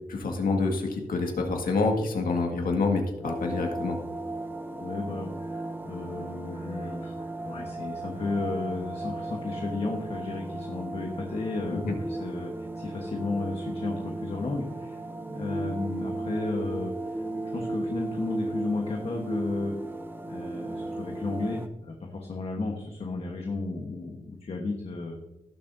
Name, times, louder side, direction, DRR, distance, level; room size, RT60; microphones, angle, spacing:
voice 1, 0.1-4.0 11.7-11.9, left 3 dB, 80° left, 2 dB, 1.9 m, -27 dB
sound 1, 3.2-21.7, right 2 dB, 15° right, 0.8 m, -35 dB
voice 2, 4.8-15.0 15.3-19.7 20.2-25.2, left 3 dB, 45° left, 2 dB, 1.3 m, -33 dB
18.0 x 7.5 x 2.7 m, 1.0 s
wide cardioid pair, 135°, 14 cm